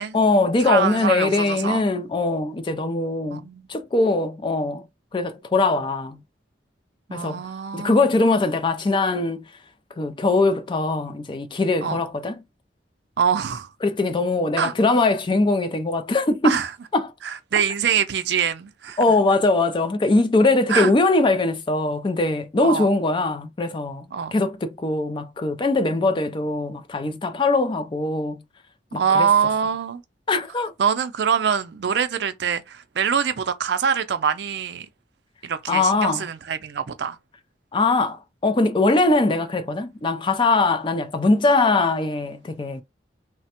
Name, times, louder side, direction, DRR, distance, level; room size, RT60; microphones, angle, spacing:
voice 1, 0.1-3.4 3.7-4.8 5.1-6.2 7.1-7.4 7.7-9.4 10.0-12.4 13.8-16.6 16.9-17.1 19.0-28.4 28.9-29.3 30.3-30.7 35.7-36.2 37.7-42.8, left 3 dB, 25° left, 0.3 m, -21 dB
voice 2, 0.6-1.8 3.3-3.7 7.1-8.1 11.8-12.0 13.2-13.7 14.6-14.7 16.4-16.7 17.2-19.0 20.7-20.9 22.6-22.9 24.1-24.3 25.9-26.1 28.9-30.0 30.8-34.9 35.4-37.2, right 7 dB, 70° right, 0.4 m, -24 dB
3.2 x 2.1 x 2.8 m
head